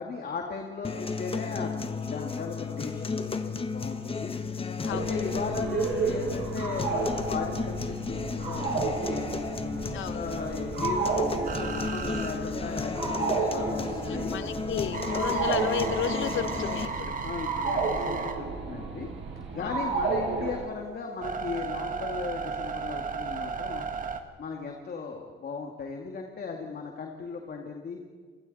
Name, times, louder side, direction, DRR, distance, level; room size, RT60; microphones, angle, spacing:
voice 1, 0.0-1.7 2.0-4.3 4.9-9.3 10.0-14.4 17.2-19.1 19.5-28.0, left 4 dB, 50° left, 2 dB, 2.4 m, -37 dB
sound 1, 0.8-16.9, left 4 dB, 30° left, 1.4 m, -33 dB
sound 2, 4.9-20.6, right 4 dB, 70° right, 5.5 m, -32 dB
voice 2, 9.9-10.2 14.1-17.2 19.6-19.8, left 8 dB, 75° left, 12 dB, 1.2 m, -33 dB
sound 3, 11.5-13.4 13.8-19.4 19.9-24.2, right 5 dB, 40° right, 1.9 m, -35 dB
28.5 x 21.5 x 4.3 m, 1.5 s
cardioid pair, 90°, 20 cm